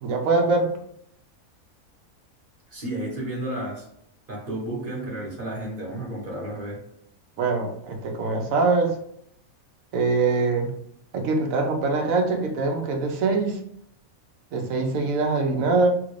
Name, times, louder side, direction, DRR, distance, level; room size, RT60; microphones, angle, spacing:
voice 1, 0.0-0.7 7.4-9.0 9.9-10.7 11.1-13.6 14.5-15.9, right 3 dB, 75° right, 3 dB, 1.1 m, -23 dB
voice 2, 2.7-3.9 4.3-6.8, right 1 dB, 40° right, -3 dB, 1.3 m, -32 dB
3.3 x 2.5 x 3.2 m, 0.70 s
omnidirectional pair, 1.5 m